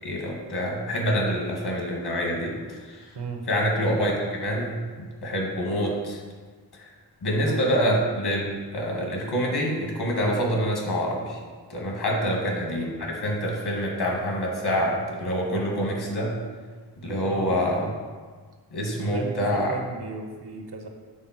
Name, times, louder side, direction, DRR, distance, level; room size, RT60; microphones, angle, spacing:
voice 1, 0.0-3.1 3.5-6.2 7.2-11.4 11.7-16.4 17.0-17.9 18.7-19.7, equal, 70° left, -1 dB, 1.7 m, -26 dB
voice 2, 3.1-3.5 7.4-7.7 12.1-12.4 17.2-17.6 18.9-20.9, right 4 dB, 75° right, 3 dB, 1.1 m, -35 dB
7.2 x 4.3 x 5.9 m, 1.5 s
wide cardioid pair, 150°, 40 cm